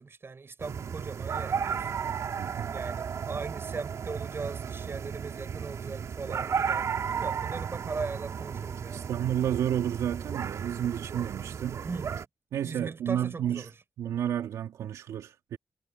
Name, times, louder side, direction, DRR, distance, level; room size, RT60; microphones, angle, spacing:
voice 1, 0.0-1.9 2.7-9.1 11.8-12.1 12.6-13.7, right 4 dB, 50° right, 6.3 m, -39 dB
sound 1, 0.6-12.2, right 7 dB, 70° right, 2.6 m, -34 dB
voice 2, 2.4-2.7 8.9-11.8 12.5-13.7 14.0-15.6, right 10 dB, 85° right, 2.7 m, -31 dB
supercardioid pair, 45°, 5 cm